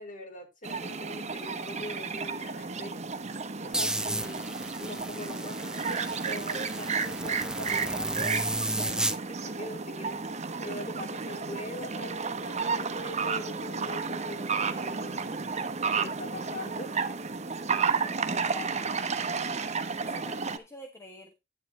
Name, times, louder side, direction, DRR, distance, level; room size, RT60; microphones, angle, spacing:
voice 1, 0.0-2.9 3.6-4.5 4.8-10.2 10.6-15.3 16.0-17.0, left 1 dB, 45° left, 2 dB, 4.1 m, -42 dB
sound 1, 0.6-20.6, right 5 dB, 40° right, 1.0 m, -32 dB
sound 2, 3.7-9.2, right 1 dB, 5° right, 0.6 m, -33 dB
voice 2, 18.3-18.8 20.1-21.3, left 2 dB, 15° left, 3 dB, 1.4 m, -46 dB
10.0 x 9.9 x 3.2 m, 0.23 s
head